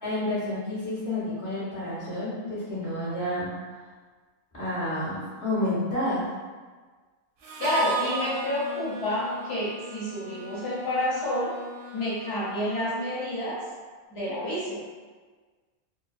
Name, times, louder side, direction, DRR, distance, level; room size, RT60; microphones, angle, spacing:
voice 1, 0.0-3.5 4.5-6.2 14.2-14.3, left 1 dB, 20° left, -11 dB, 0.8 m, -30 dB
Harmonica, 7.4-13.2, right 3 dB, 70° right, 0.8 m, -38 dB
voice 2, 7.6-11.5 11.9-13.6 14.1-14.8, left 1 dB, 70° left, -9 dB, 1.1 m, -29 dB
2.8 x 2.2 x 2.4 m, 1.4 s
omnidirectional pair, 1.1 m